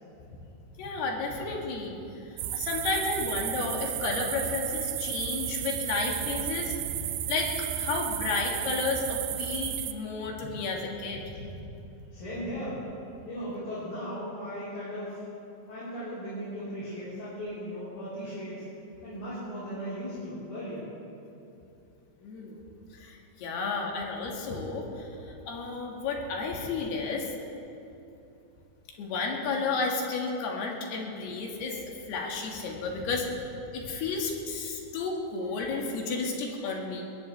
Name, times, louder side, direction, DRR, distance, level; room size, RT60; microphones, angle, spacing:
voice 1, 0.8-2.0 2.5-11.5 22.2-22.6 22.9-27.3 29.0-33.3 33.7-37.0, left 4 dB, 85° left, 0 dB, 3.9 m, -32 dB
sound 1, 2.4-9.9, right 12 dB, 80° right, 2.4 m, -33 dB
voice 2, 12.1-12.8 13.3-15.2 15.7-18.7 19.0-20.9, equal, 50° left, -12 dB, 5.6 m, -37 dB
22.5 x 19.0 x 3.4 m, 2.8 s
omnidirectional pair, 4.5 m